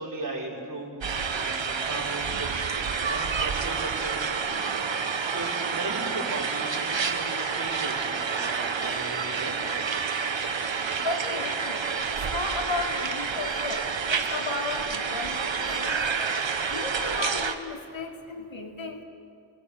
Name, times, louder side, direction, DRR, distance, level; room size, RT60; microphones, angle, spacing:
voice 1, 0.0-4.6 5.3-9.8, right 2 dB, 40° right, -3 dB, 6.0 m, -37 dB
sound 1, 1.0-17.5, right 5 dB, 65° right, 1.5 m, -29 dB
voice 2, 11.0-11.9 12.3-16.0 16.7-19.0, left 3 dB, 65° left, 1 dB, 3.1 m, -34 dB
29.5 x 20.5 x 6.9 m, 2.4 s
wide cardioid pair, 70°, 49 cm